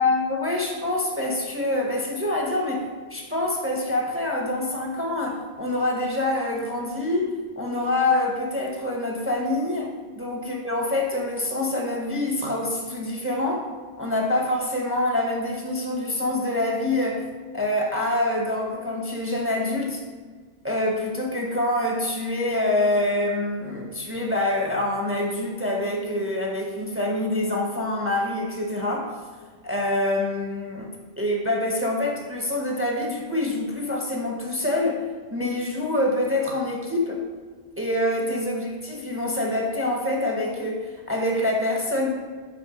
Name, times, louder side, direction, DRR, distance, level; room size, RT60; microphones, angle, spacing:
voice 1, 0.0-13.7 14.0-17.3 17.5-20.0 20.6-29.2 29.6-30.9 31.2-37.2 37.8-42.1, left 1 dB, 15° right, 0 dB, 0.9 m, -26 dB
6.0 x 4.3 x 6.2 m, 1.5 s
omnidirectional pair, 1.2 m